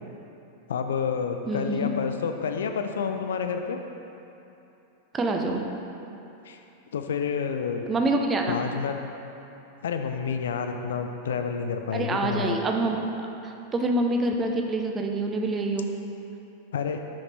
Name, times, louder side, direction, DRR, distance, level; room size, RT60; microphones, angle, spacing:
voice 1, 0.7-3.8 6.5-6.6 6.9-7.9 8.5-9.1 9.8-12.6 16.7-17.0, left 6 dB, 65° left, 6 dB, 0.4 m, -29 dB
voice 2, 1.5-1.9 5.1-5.6 7.9-8.6 11.9-13.0 13.4-15.9, right 2 dB, 20° right, 2 dB, 0.7 m, -26 dB
6.4 x 5.9 x 4.4 m, 2.9 s
figure-of-eight pair, 90°, 0 cm